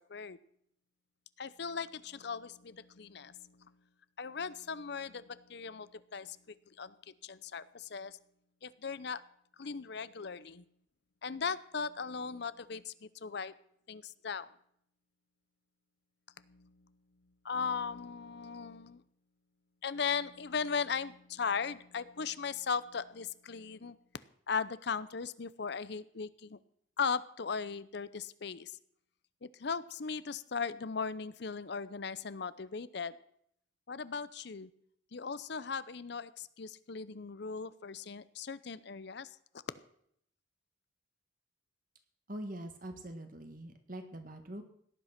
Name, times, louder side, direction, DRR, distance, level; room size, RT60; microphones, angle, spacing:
voice 1, 1.4-3.7 4.2-6.4 6.8-6.9 7.2-8.2 8.6-9.2 9.6-10.6 11.2-13.5 13.9-14.5 16.5-16.7 17.4-19.0 19.8-24.0 24.5-26.6 27.0-28.8 29.4-33.1 33.9-34.7 35.1-39.3, left 5 dB, 60° left, 16 dB, 0.7 m, -38 dB
voice 2, 42.3-44.6, right 1 dB, 45° right, 7 dB, 1.8 m, -43 dB
17.5 x 10.5 x 5.9 m, 0.69 s
head